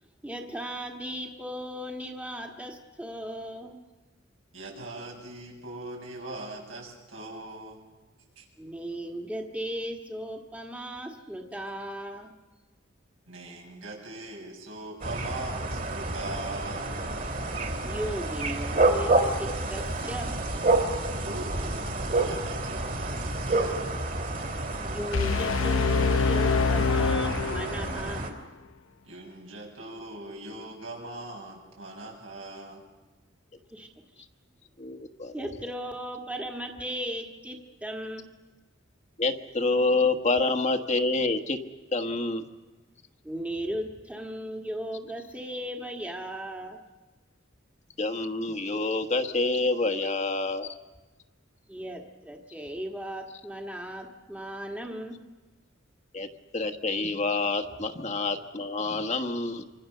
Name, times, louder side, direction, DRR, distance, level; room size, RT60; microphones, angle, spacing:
voice 1, 0.2-3.8 8.6-12.3 17.8-20.4 24.8-28.3 33.7-34.2 35.3-38.3 43.2-46.8 51.7-55.2, equal, 5° right, 2 dB, 1.7 m, -36 dB
voice 2, 4.5-7.8 8.4-8.5 13.3-17.0 21.1-24.1 29.0-32.8, right 2 dB, 80° right, 0 dB, 7.1 m, -41 dB
sound 1, 15.0-28.3, right 2 dB, 45° right, 3.2 m, -29 dB
sound 2, 25.1-28.1, left 4 dB, 90° left, 0.7 m, -25 dB
voice 3, 34.8-35.3 39.2-41.6 41.9-42.4 48.0-50.7 56.1-56.3 56.5-59.6, left 3 dB, 35° left, 6 dB, 1.3 m, -27 dB
26.0 x 25.5 x 6.7 m, 1.2 s
head